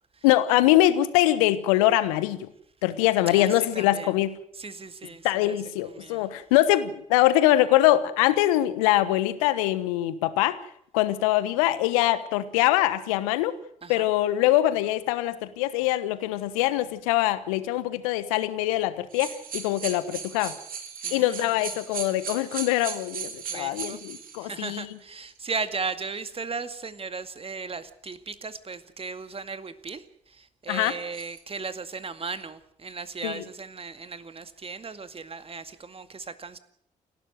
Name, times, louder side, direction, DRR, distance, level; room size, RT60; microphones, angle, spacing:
voice 1, 0.2-2.5 2.8-4.4 5.2-10.6 10.9-13.6 13.9-20.5 21.1-24.9 30.7-30.9 33.2-33.4, left 14 dB, 75° left, 14 dB, 1.2 m, -23 dB
voice 2, 3.3-4.1 4.6-5.6 5.8-6.3 13.8-14.1 21.0-21.5 23.4-24.0 24.4-36.6, right 4 dB, 35° right, 11 dB, 2.1 m, -36 dB
sound 1, 19.1-24.5 25.3-25.4 30.8-31.4, right 7 dB, 55° right, 2.8 m, -37 dB
29.5 x 12.5 x 7.9 m, 0.70 s
figure-of-eight pair, 45°, 18 cm